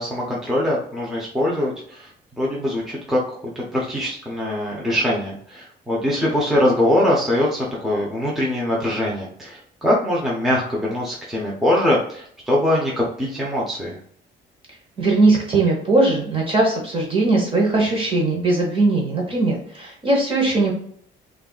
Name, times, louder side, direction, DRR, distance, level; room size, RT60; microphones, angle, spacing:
voice 1, 0.0-2.1 2.4-3.2 3.6-14.0, left 1 dB, ahead, -5 dB, 0.7 m, -22 dB
voice 2, 15.0-20.7, right 2 dB, 25° right, -2 dB, 1.0 m, -19 dB
6.5 x 2.5 x 2.3 m, 0.62 s
cardioid pair, 150°, 20 cm